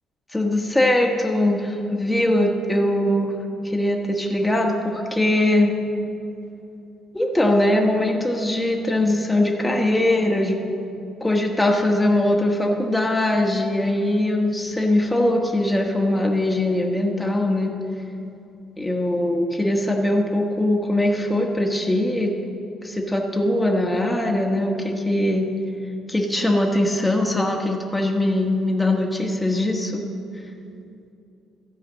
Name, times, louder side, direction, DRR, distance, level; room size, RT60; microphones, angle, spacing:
voice 1, 0.3-3.3 3.6-5.7 7.1-10.6 11.2-17.7 18.8-22.3 22.8-25.5 26.1-30.0, left 1 dB, 10° left, 0 dB, 1.3 m, -21 dB
13.5 x 4.9 x 7.4 m, 2.6 s
hypercardioid pair, 55°, 0 cm